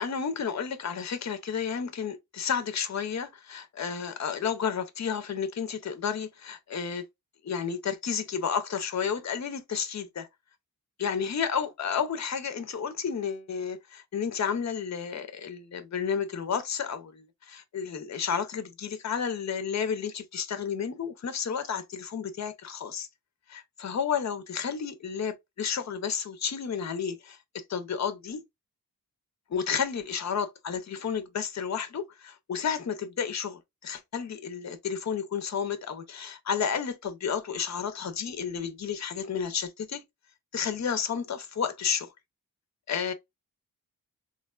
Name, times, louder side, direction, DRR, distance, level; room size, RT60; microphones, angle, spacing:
voice 1, 0.0-7.1 7.4-10.3 11.0-23.1 23.5-28.4 29.5-40.0 40.5-42.1 42.9-43.1, left 7 dB, 45° left, 0.6 m, -31 dB
3.7 x 2.1 x 2.3 m
wide cardioid pair, 105°, 37 cm